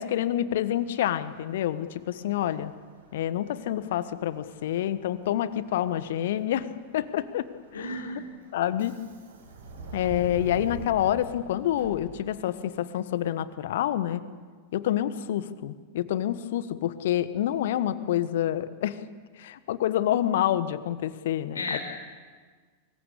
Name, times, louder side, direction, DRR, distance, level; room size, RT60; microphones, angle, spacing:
voice 1, 0.0-2.7 3.1-7.5 7.7-7.9 8.5-8.9 9.9-14.2 14.7-19.0 19.4-21.8, left 11 dB, 55° left, 14 dB, 1.3 m, -28 dB
Subway metro underground, 0.7-12.6, right 3 dB, 65° right, 5.3 m, -46 dB
voice 2, 7.7-8.2 21.5-21.8, left 2 dB, 75° left, 4 dB, 4.8 m, -32 dB
25.0 x 22.0 x 8.5 m, 1.5 s
figure-of-eight pair, 90°, 0 cm